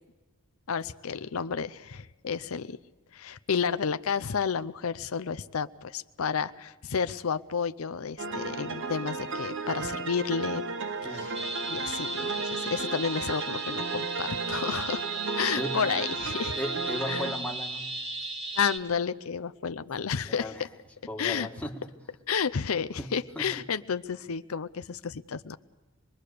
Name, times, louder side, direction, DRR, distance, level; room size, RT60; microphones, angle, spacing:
voice 1, 0.7-2.8 3.1-10.6 11.1-11.4 11.6-15.0 15.4-16.6 17.1-17.3 18.6-20.7 21.2-21.5 22.3-25.6, left 6 dB, 90° left, 12 dB, 0.6 m, -31 dB
sound 1, 8.2-17.4, right 3 dB, 60° right, 1.0 m, -34 dB
sound 2, 11.3-18.8, right 3 dB, 30° right, 1.9 m, -35 dB
voice 2, 16.6-17.9 20.2-20.7 21.1-21.9 23.0-23.6, equal, 5° left, 1 dB, 1.6 m, -36 dB
25.5 x 21.0 x 6.7 m, 1.2 s
head